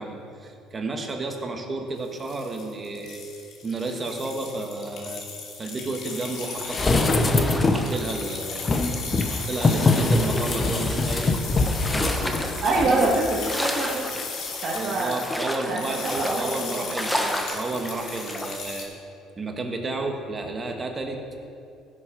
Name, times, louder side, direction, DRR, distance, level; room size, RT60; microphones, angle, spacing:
voice 1, 0.0-3.2 3.6-5.2 5.6-8.6 9.3-11.3 12.8-13.1 13.3-13.5 14.7-18.9 19.4-21.2, right 2 dB, 25° right, 3 dB, 1.5 m, -32 dB
sound 1, 2.0-18.8, left 5 dB, 60° left, 2.3 m, -37 dB
sound 2, 6.1-18.6, equal, 5° left, 1.1 m, -34 dB
sound 3, 6.7-7.9 8.6-13.1 13.4-13.5, left 3 dB, 25° left, 0.9 m, -23 dB
voice 2, 11.9-12.2 12.6-14.0 14.6-15.1 15.7-16.8, right 2 dB, 45° right, -5 dB, 1.8 m, -25 dB
16.0 x 7.6 x 5.2 m, 2.5 s
cardioid pair, 130°, 0 cm